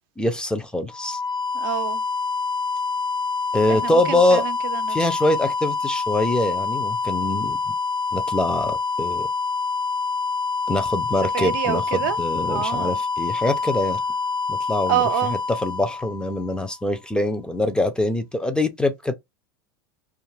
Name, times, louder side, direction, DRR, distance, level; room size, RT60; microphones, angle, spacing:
voice 1, 0.2-1.2 3.5-4.4 4.9-7.6 8.1-9.3 10.7-11.8 12.2-14.0 14.5-15.0 15.6-19.1, left 1 dB, 5° left, 0.5 m, -23 dB
sound 1, 0.9-16.7, left 4 dB, 65° left, 1.2 m, -26 dB
voice 2, 1.5-2.0 3.7-5.0 11.3-13.0 14.9-15.4, right 13 dB, 70° right, 0.5 m, -27 dB
2.5 x 2.4 x 3.1 m
supercardioid pair, 115°, 12 cm